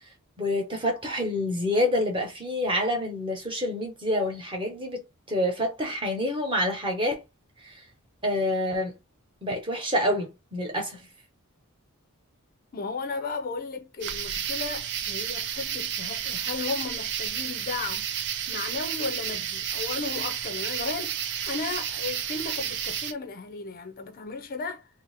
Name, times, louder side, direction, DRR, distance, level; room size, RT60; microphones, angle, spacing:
voice 1, 0.4-7.2 7.6-7.7 8.2-8.9 9.4-11.1, left 1 dB, 25° right, 1.1 m, -27 dB
voice 2, 12.7-18.2 18.5-21.2 21.5-24.9, left 4 dB, 40° left, 0.5 m, -35 dB
sound 1, 14.0-23.1, right 9 dB, 55° right, 0.4 m, -31 dB
2.8 x 2.7 x 4.0 m
head